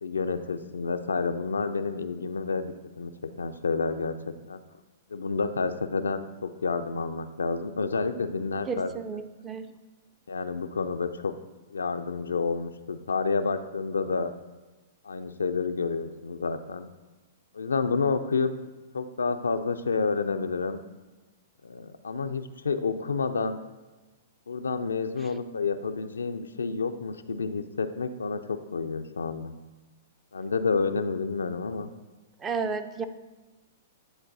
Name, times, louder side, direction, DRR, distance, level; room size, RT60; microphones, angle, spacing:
voice 1, 0.0-3.1 3.4-4.1 4.5-4.6 5.1-8.9 10.3-11.3 11.7-14.3 15.0-16.9 17.5-18.5 18.9-20.8 21.6-23.6 24.5-29.5 30.3-31.9, left 4 dB, 85° left, 9 dB, 0.4 m, -29 dB
voice 2, 8.7-9.7 32.4-33.1, right 5 dB, 20° right, 9 dB, 0.4 m, -32 dB
10.0 x 3.9 x 2.7 m, 1.1 s
hypercardioid pair, 115°, 0 cm